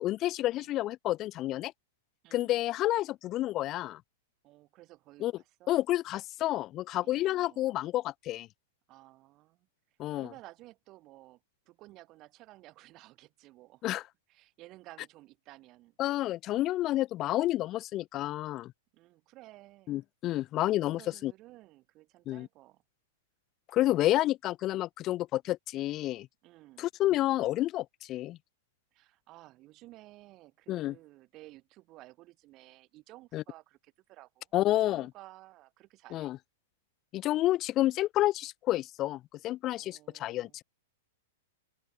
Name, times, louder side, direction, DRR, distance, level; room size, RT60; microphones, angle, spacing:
voice 1, 0.0-1.7 2.3-4.0 5.2-5.3 5.7-8.5 10.0-10.3 13.8-14.0 16.0-18.7 19.9-21.3 22.3-22.5 23.7-26.3 26.8-28.4 30.7-30.9 33.3-33.4 34.5-35.1 36.1-36.4 37.1-40.6, left 15 dB, 30° left, 0.4 m, -30 dB
voice 2, 4.4-5.8 7.0-7.7 8.9-9.7 10.1-13.8 14.3-16.0 18.9-20.0 20.7-22.8 26.4-26.9 28.9-34.5 34.8-36.3 39.7-40.6, right 18 dB, 30° right, 3.4 m, -54 dB
open air
supercardioid pair, 150°, 0 cm